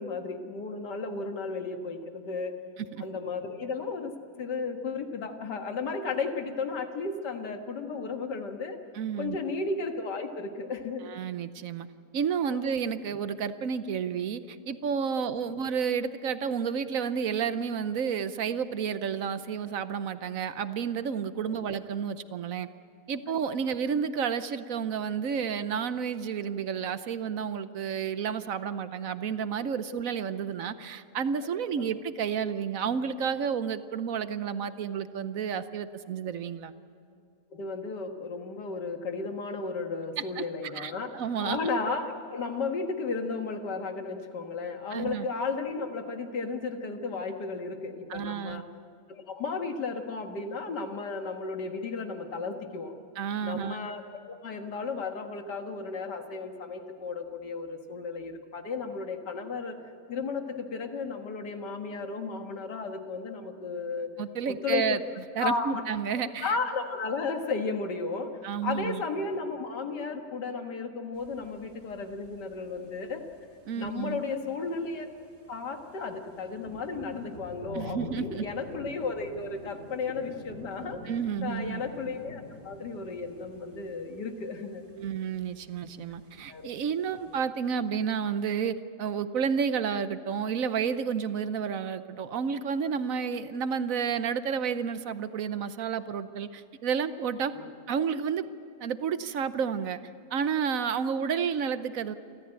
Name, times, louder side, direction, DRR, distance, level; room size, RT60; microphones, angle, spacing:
voice 1, 0.0-2.5 3.0-8.8 9.2-11.0 12.5-12.6 15.2-15.3 21.5-21.6 23.7-23.8 29.9-30.0 31.4-31.9 37.5-41.1 41.4-48.6 49.1-52.9 53.4-59.8 60.1-64.1 64.5-65.0 65.4-65.8 66.4-68.3 68.6-73.2 73.7-75.1 75.5-81.0 81.4-84.8 86.5-86.7 87.0-87.3 97.5-97.7, left 4 dB, 85° left, 5 dB, 2.2 m, -34 dB
voice 2, 8.9-9.4 11.0-11.9 12.1-22.7 23.1-36.7 40.4-40.5 40.7-41.6 44.9-45.3 48.1-48.6 53.2-53.8 64.2-65.0 65.3-66.6 68.4-69.0 73.7-74.2 77.7-78.4 81.1-81.8 85.0-97.5 97.9-98.5 98.8-100.0 100.3-102.1, right 7 dB, 60° right, 12 dB, 1.1 m, -31 dB
sound 1, 71.1-87.4, equal, 30° right, 2.3 m, -48 dB
28.5 x 13.5 x 8.9 m, 2.4 s
omnidirectional pair, 1.8 m